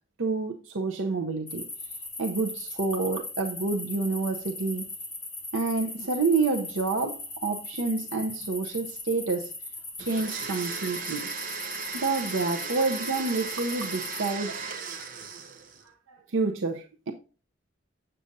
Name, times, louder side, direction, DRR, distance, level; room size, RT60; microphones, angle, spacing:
voice 1, 0.2-1.7 2.2-4.9 5.5-9.5 10.0-11.3 11.9-14.9 16.1-17.1, right 3 dB, 85° right, 0.7 m, -28 dB
sound 1, 1.5-14.3, left 2 dB, 10° left, 2.8 m, -39 dB
Domestic sounds home sounds, 10.0-15.8, right 5 dB, 45° right, 1.0 m, -36 dB
7.6 x 6.7 x 2.6 m
head